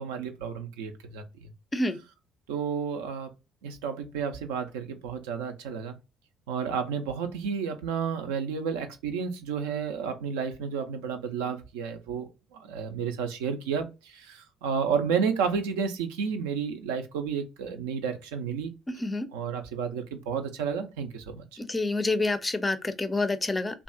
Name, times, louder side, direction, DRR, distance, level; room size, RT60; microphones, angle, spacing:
voice 1, 0.0-1.5 2.5-3.3 3.6-5.9 6.5-18.7 19.3-21.5, right 6 dB, 70° right, 0.4 m, -31 dB
voice 2, 21.6-23.8, left 2 dB, 20° left, 0.4 m, -28 dB
2.6 x 2.2 x 2.5 m
figure-of-eight pair, 50°, 0 cm